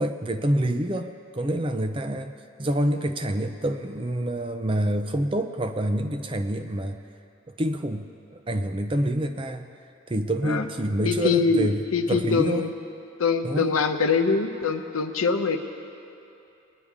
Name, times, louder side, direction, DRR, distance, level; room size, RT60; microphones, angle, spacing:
voice 1, 0.0-2.3 2.6-7.0 7.5-9.7 10.1-11.8 12.1-12.6 13.4-13.7, right 1 dB, 25° right, 8 dB, 0.5 m, -27 dB
voice 2, 11.0-12.7 13.2-15.6, left 4 dB, 85° left, 6 dB, 0.8 m, -23 dB
21.0 x 10.0 x 3.6 m, 2.8 s
head